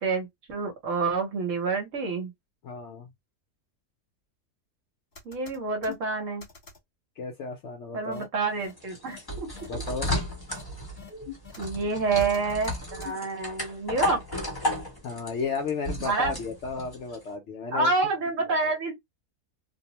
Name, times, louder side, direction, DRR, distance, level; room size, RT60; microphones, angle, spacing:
voice 1, 0.0-2.3 5.2-6.4 7.9-9.5 11.6-14.2 16.0-16.3 17.7-18.9, right 3 dB, 60° right, 1.1 m, -28 dB
voice 2, 2.6-3.1 7.2-8.3 9.7-10.2 15.0-17.9, left 5 dB, 65° left, 0.7 m, -33 dB
sound 1, 5.2-6.0 6.4-6.8 8.1-8.2 8.6-8.7 9.1-9.2 9.5-9.7 10.0-10.1 10.5-10.6 11.0-11.6 12.2-13.1, left 5 dB, 40° left, 1.3 m, -43 dB
sound 2, 8.5-17.2, left 1 dB, 20° left, 0.7 m, -34 dB
2.6 x 2.0 x 2.9 m
omnidirectional pair, 1.6 m